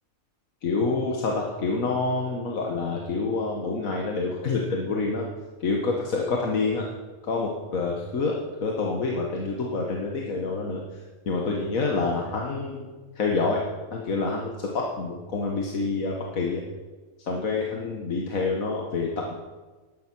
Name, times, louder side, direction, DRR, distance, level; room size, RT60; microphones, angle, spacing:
voice 1, 0.6-5.3 5.6-6.9 7.2-10.8 11.3-12.9 13.2-13.6 13.9-16.6 17.3-19.3, left 3 dB, 75° left, -1 dB, 1.7 m, -27 dB
11.0 x 10.5 x 6.0 m, 1.3 s
omnidirectional pair, 1.5 m